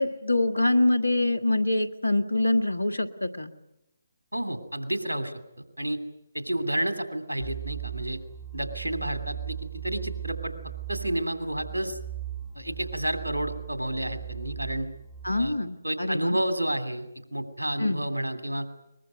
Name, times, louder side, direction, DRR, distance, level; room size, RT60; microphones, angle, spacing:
voice 1, 0.0-3.5 15.2-16.4 17.8-18.0, left 2 dB, 85° left, 11 dB, 1.7 m, -25 dB
voice 2, 4.3-6.0 6.3-8.2 8.5-9.6 9.8-10.5 10.9-12.0 12.5-14.9 15.3-15.5 15.8-18.7, right 1 dB, 85° right, 9 dB, 2.8 m, -30 dB
sound 1, 7.4-15.6, right 10 dB, 5° left, 7.0 m, -38 dB
22.5 x 21.0 x 9.3 m, 0.87 s
figure-of-eight pair, 145°, 0 cm